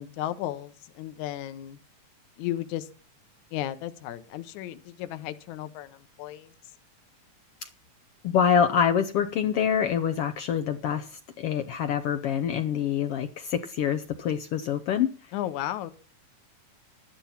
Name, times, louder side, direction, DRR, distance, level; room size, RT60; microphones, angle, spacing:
voice 1, 0.0-1.8 2.4-2.9 3.5-6.5 15.3-15.9, left 13 dB, 70° left, 2.2 m, -34 dB
voice 2, 8.2-15.1, left 8 dB, 90° left, 1.3 m, -26 dB
13.0 x 11.5 x 5.8 m
omnidirectional pair, 3.8 m